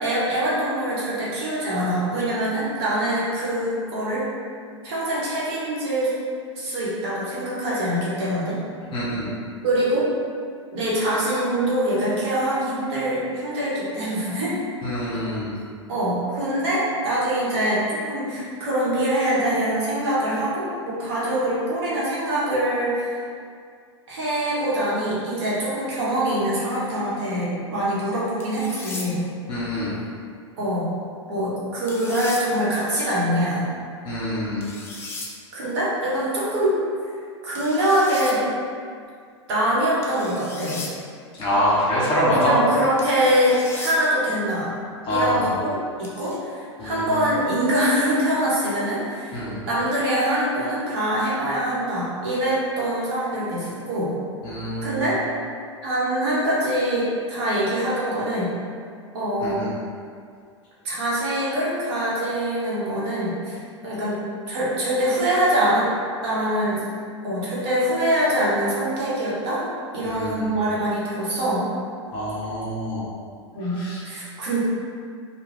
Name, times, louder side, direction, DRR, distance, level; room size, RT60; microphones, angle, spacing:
voice 1, 0.0-4.3 4.8-6.1 6.5-8.6 9.6-10.1 10.7-14.6 15.1-15.2 15.9-23.2 24.1-29.2 30.6-30.9 31.3-33.7 35.5-36.8 37.4-38.4 39.5-40.8 42.3-44.7 45.1-54.1 54.8-55.2 55.8-58.6 59.1-59.6 60.8-65.9 66.2-66.9 67.2-69.6 69.9-71.6 73.5-74.6, right 1 dB, 55° right, -8 dB, 1.0 m, -24 dB
voice 2, 8.9-9.3 14.8-15.5 29.5-29.9 34.0-34.7 41.4-42.6 45.0-45.5 46.8-47.1 49.3-49.6 54.4-55.1 59.4-59.7 70.0-70.6 72.1-73.1 73.7-74.0, equal, 35° left, -8 dB, 1.0 m, -25 dB
sound 1, 28.4-29.1 31.9-32.4 34.6-35.3 37.5-38.3 40.0-40.9 43.0-44.0 46.0-46.4, left 2 dB, 15° left, 0.4 m, -36 dB
2.4 x 2.2 x 3.3 m, 2.2 s
hypercardioid pair, 100°, 15 cm